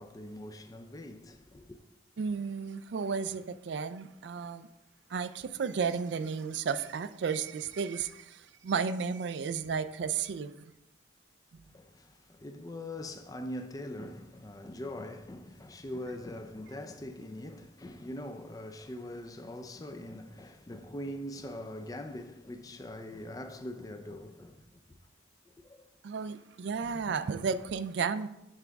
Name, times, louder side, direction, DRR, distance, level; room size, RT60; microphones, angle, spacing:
voice 1, 0.0-1.8 11.7-24.7 25.5-25.9 26.9-27.0, left 1 dB, 20° left, 0.4 m, -42 dB
voice 2, 2.2-4.7 5.1-8.4 8.6-10.6 26.0-28.3, right 5 dB, 65° right, 0.4 m, -33 dB
9.9 x 3.5 x 3.4 m
head